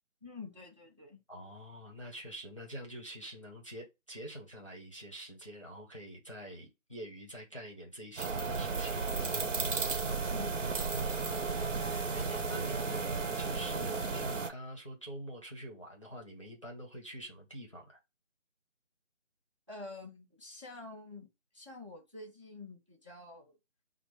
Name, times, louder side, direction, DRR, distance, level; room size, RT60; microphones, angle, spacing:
voice 1, 0.2-1.2 10.3-11.2 19.7-21.3 21.5-23.6, left 3 dB, 25° right, 0.7 m, -48 dB
voice 2, 1.3-9.4 11.5-18.0, right 1 dB, 25° left, 0.7 m, -46 dB
sound 1, 8.2-14.5, right 4 dB, 75° right, 1.0 m, -34 dB
4.8 x 2.1 x 4.5 m
figure-of-eight pair, 175°, 37 cm